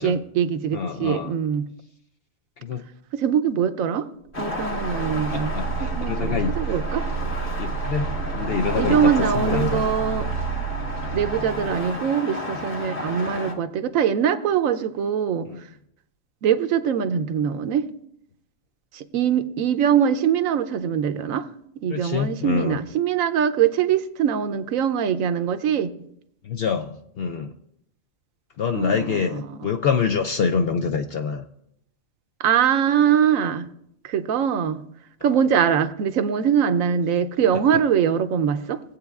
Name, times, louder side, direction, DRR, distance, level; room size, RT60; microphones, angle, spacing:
voice 1, 0.0-1.6 3.1-4.1 4.4-7.1 8.7-10.3 11.1-15.7 16.4-17.9 18.9-21.5 21.8-25.9 28.7-29.8 32.4-33.7 34.0-34.8 35.2-38.8, right 8 dB, 75° right, 11 dB, 1.0 m, -23 dB
voice 2, 0.7-1.3 2.6-2.8 5.3-6.5 7.6-9.8 15.5-15.6 21.9-22.8 26.4-27.5 28.6-31.4, left 6 dB, 65° left, 6 dB, 0.6 m, -26 dB
sound 1, 4.3-13.5, left 2 dB, 40° left, 1.7 m, -32 dB
sound 2, 4.3-12.0, right 6 dB, 60° right, 0.5 m, -30 dB
18.0 x 8.3 x 2.3 m, 0.73 s
omnidirectional pair, 1.4 m